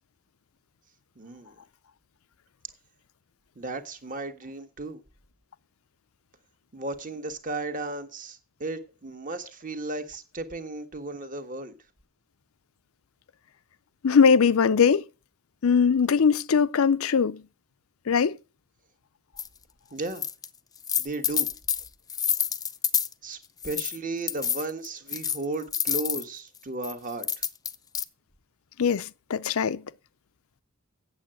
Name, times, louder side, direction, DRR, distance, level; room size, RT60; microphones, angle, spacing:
voice 1, 1.1-1.5 3.5-5.0 6.7-11.7 19.9-20.3 21.0-21.5 23.2-23.4 23.6-27.3, right 2 dB, 40° right, 1.4 m, -35 dB
voice 2, 14.0-15.0 15.6-17.4 18.1-18.4 28.8-29.8, left 6 dB, 70° left, 0.5 m, -21 dB
sound 1, 19.4-19.5 20.1-20.5 20.8-23.1 23.6-24.0 24.3-26.2 26.8-28.0, left 8 dB, 15° left, 0.5 m, -28 dB
8.6 x 7.8 x 7.5 m
head